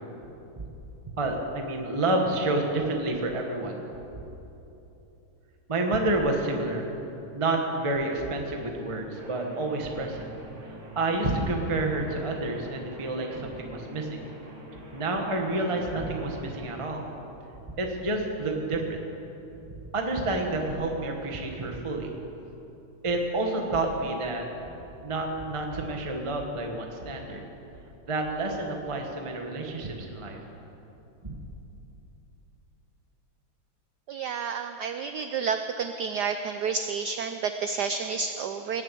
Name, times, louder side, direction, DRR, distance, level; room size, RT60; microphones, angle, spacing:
voice 1, 1.2-3.8 5.7-6.9 7.3-10.3 10.6-14.2 14.9-17.0 17.8-19.0 19.9-22.1 23.0-24.5 25.0-27.4 28.1-30.4 31.2-31.4, right 2 dB, 20° right, 2 dB, 1.0 m, -29 dB
sound 1, 9.1-16.8, right 2 dB, 40° right, 3.1 m, -45 dB
voice 2, 34.1-38.8, right 5 dB, 80° right, 8 dB, 0.9 m, -30 dB
19.5 x 7.5 x 8.5 m, 3.0 s
omnidirectional pair, 2.4 m